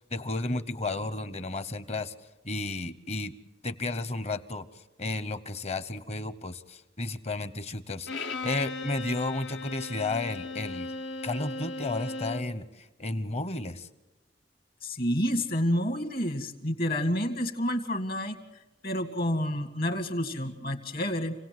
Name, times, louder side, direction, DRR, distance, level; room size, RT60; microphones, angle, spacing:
voice 1, 0.1-2.1 2.4-3.4 3.6-4.7 5.0-10.9 11.2-13.9, left 2 dB, 35° left, 14 dB, 1.0 m, -33 dB
Bowed string instrument, 8.1-12.6, left 3 dB, 80° left, 1.3 m, -37 dB
voice 2, 14.8-18.4 18.8-21.3, equal, 55° left, 8 dB, 2.2 m, -29 dB
28.0 x 17.5 x 7.8 m, 1.1 s
head